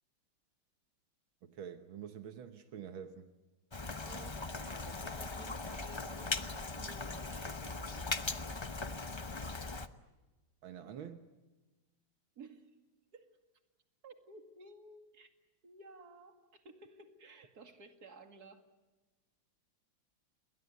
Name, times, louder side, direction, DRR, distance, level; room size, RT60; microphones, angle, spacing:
voice 1, 1.4-3.3 10.6-11.3, right 8 dB, 80° right, 8 dB, 1.9 m, -47 dB
Rain, 3.7-9.9, left 3 dB, 40° left, 0.3 m, -39 dB
voice 2, 4.1-8.0 12.4-12.8 13.1-13.4 14.0-15.3 15.6-18.6, right 3 dB, 50° right, 6 dB, 2.7 m, -55 dB
29.0 x 22.0 x 8.2 m, 1.2 s
omnidirectional pair, 2.2 m